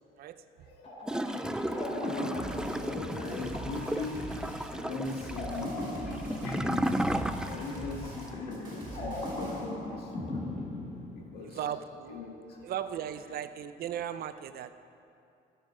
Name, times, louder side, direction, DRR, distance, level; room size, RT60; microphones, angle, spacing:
sound 1, 0.8-11.5, left 1 dB, 35° left, 2.8 m, -38 dB
Gurgling / Toilet flush, 1.0-7.9 8.2-8.3, right 1 dB, 5° right, 0.3 m, -35 dB
voice 1, 1.5-4.2 4.8-5.7 6.0-10.4 11.1-11.6 12.1-12.3, left 3 dB, 70° left, 0 dB, 2.2 m, -40 dB
sound 2, 2.4-9.7, right 2 dB, 25° right, 3.4 m, -44 dB
voice 2, 11.4-12.2 12.6-14.7, right 9 dB, 65° right, 11 dB, 0.6 m, -37 dB
19.0 x 6.7 x 5.0 m, 2.6 s
cardioid pair, 110°, 17 cm